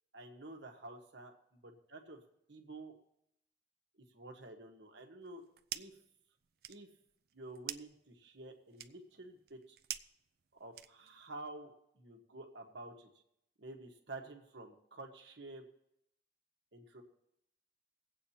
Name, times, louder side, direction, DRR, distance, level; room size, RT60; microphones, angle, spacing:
voice 1, 0.1-1.3 1.6-2.2 2.5-2.9 4.1-5.4 5.7-6.0 6.7-6.9 7.3-9.8 10.5-13.1 13.6-15.6 16.7-17.0, right 2 dB, 85° right, 3 dB, 1.4 m, -50 dB
sound 1, 5.2-6.1 6.4-11.3, right 12 dB, 60° right, 0.4 m, -47 dB
23.5 x 8.4 x 2.8 m, 0.78 s
head